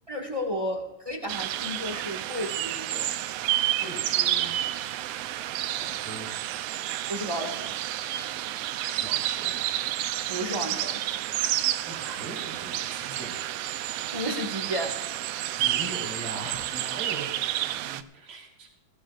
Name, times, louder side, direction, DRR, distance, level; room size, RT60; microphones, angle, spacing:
voice 1, 0.1-3.1 7.1-7.7 10.3-11.0 14.1-15.0, equal, 25° right, 2 dB, 0.7 m, -32 dB
sound 1, 1.3-18.0, right 13 dB, 85° right, 1.4 m, -30 dB
voice 2, 3.8-4.6 5.3-6.4 9.0-9.5 11.9-13.7 15.6-18.7, right 2 dB, 45° right, -1 dB, 4.0 m, -41 dB
19.5 x 15.0 x 2.4 m, 0.88 s
omnidirectional pair, 3.5 m